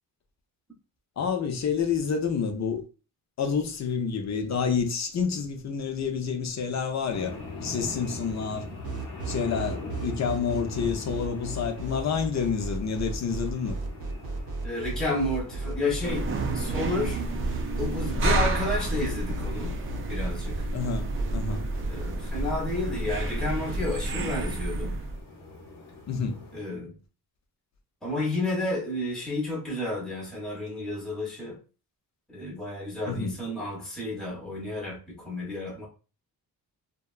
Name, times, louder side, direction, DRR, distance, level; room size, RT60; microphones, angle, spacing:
voice 1, 1.2-2.8 3.4-8.7 9.3-13.8 18.1-18.4 20.7-21.7 26.1-26.4 33.1-33.4, left 6 dB, 45° left, 0.5 m, -29 dB
sound 1, 7.1-26.6, left 3 dB, 90° left, 0.9 m, -43 dB
sound 2, 8.8-23.8, right 3 dB, 70° right, 0.7 m, -34 dB
voice 2, 14.6-17.2 17.8-19.7 20.1-20.6 21.9-25.0 26.5-26.9 28.0-31.6 32.3-35.9, left 2 dB, ahead, 0.7 m, -31 dB
sound 3, 16.0-25.2, right 2 dB, 35° right, 0.4 m, -30 dB
2.7 x 2.2 x 2.3 m
wide cardioid pair, 125°, 39 cm